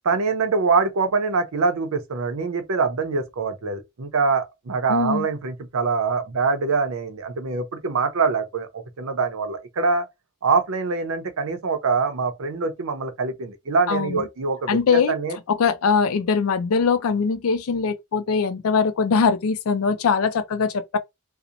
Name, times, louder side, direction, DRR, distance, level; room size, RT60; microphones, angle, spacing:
voice 1, 0.0-10.1 10.4-15.4, right 4 dB, 90° right, 0.6 m, -24 dB
voice 2, 4.9-5.3 13.9-14.2 14.7-15.1 15.5-21.0, left 5 dB, 90° left, 0.4 m, -21 dB
2.7 x 2.0 x 2.5 m
head